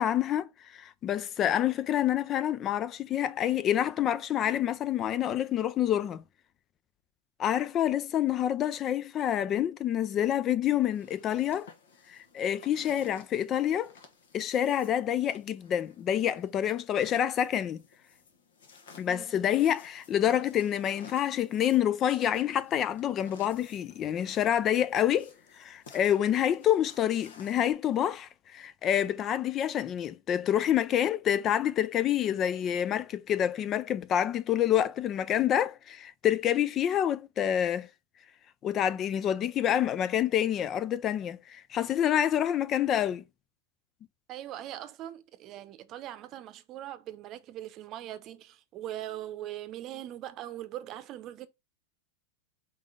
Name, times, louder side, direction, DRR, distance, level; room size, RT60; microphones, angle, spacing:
voice 1, 0.0-6.2 7.4-11.7 12.1-14.0 14.3-17.8 19.0-25.3 25.6-37.9 38.6-43.2, left 10 dB, 35° left, 0.4 m, -27 dB
sound 1, 10.9-27.7, left 5 dB, 75° left, 1.3 m, -56 dB
voice 2, 44.3-51.5, right 13 dB, 40° right, 0.7 m, -41 dB
3.9 x 3.7 x 3.4 m
hypercardioid pair, 105°, 0 cm